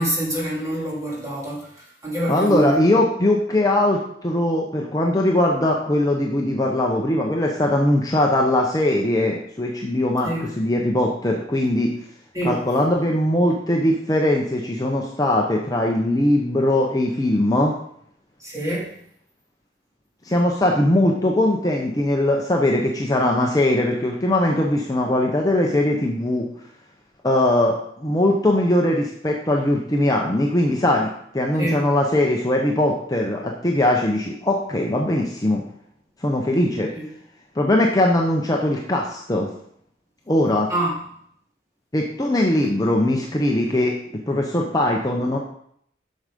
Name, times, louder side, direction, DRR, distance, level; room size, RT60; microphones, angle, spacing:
voice 1, 0.0-2.8 10.2-10.5 12.3-12.6 18.4-18.9 31.6-31.9 36.9-37.1 40.7-41.0, right 1 dB, 15° right, -6 dB, 3.1 m, -26 dB
voice 2, 2.3-11.9 12.4-17.7 20.2-26.5 27.2-35.6 36.2-36.9 37.6-39.5 40.3-40.7 41.9-44.0 44.3-45.4, left 1 dB, 20° left, 0 dB, 0.8 m, -20 dB
7.9 x 6.4 x 5.2 m, 0.69 s
head